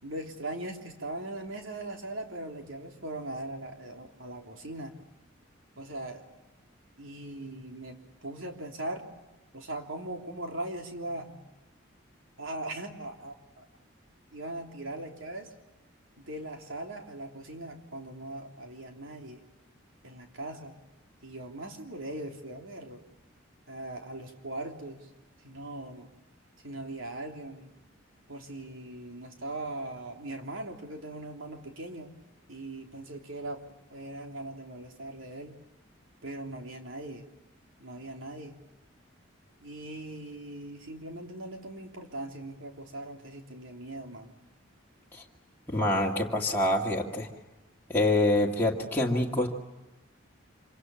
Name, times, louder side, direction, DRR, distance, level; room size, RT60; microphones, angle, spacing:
voice 1, 0.0-4.9 5.8-6.3 7.0-9.1 9.5-11.4 12.4-13.7 14.3-15.5 16.2-19.4 20.0-20.8 21.2-23.0 23.7-25.1 25.4-26.1 26.6-27.7 28.3-32.1 32.5-35.6 36.2-37.3 37.8-38.6 39.6-44.4, right 1 dB, 75° right, 3 dB, 3.4 m, -40 dB
voice 2, 45.7-47.3 47.9-49.5, left 1 dB, 10° left, -4 dB, 2.3 m, -26 dB
26.5 x 25.0 x 7.1 m, 1.0 s
head